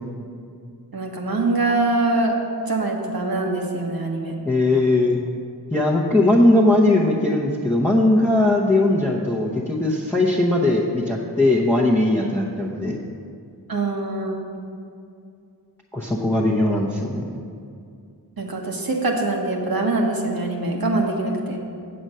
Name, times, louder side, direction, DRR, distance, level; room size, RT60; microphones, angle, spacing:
voice 1, 0.9-2.3 2.6-4.3 13.7-14.4 18.4-21.6, right 2 dB, 60° right, 0 dB, 1.4 m, -23 dB
voice 2, 4.4-5.2 5.7-13.0 15.9-17.2, left 2 dB, 5° left, -5 dB, 0.8 m, -19 dB
7.8 x 7.7 x 5.5 m, 2.4 s
wide cardioid pair, 75°, 41 cm